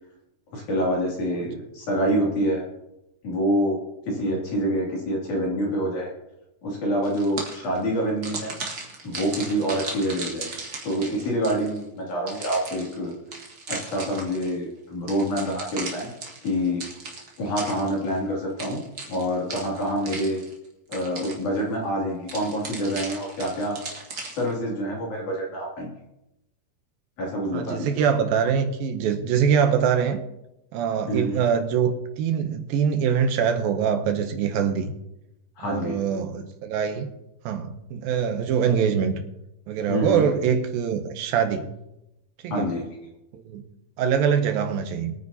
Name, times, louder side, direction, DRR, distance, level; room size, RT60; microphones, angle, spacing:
voice 1, 0.5-2.6 3.2-3.8 4.1-6.1 6.6-8.5 9.0-10.5 10.8-13.2 13.7-16.1 16.4-16.8 17.4-20.4 20.9-23.8 24.3-25.9 27.2-28.0 31.1-31.4 35.6-36.0 39.9-40.3 42.5-42.9, equal, 55° left, 4.0 m, -26 dB
sound 1, 7.0-7.8 8.2-11.8 12.3-14.6 15.1-18.2 18.6-20.7 20.9-21.6 22.3-24.5, right 3 dB, 40° right, 1.5 m, -37 dB
voice 2, 27.5-30.2 30.7-34.9 35.6-37.1 37.5-39.1 39.7-41.7 42.4-42.7 43.3-43.6 44.0-45.1, right 7 dB, 80° right, 2.5 m, -24 dB
22.5 x 9.4 x 2.8 m
omnidirectional pair, 4.4 m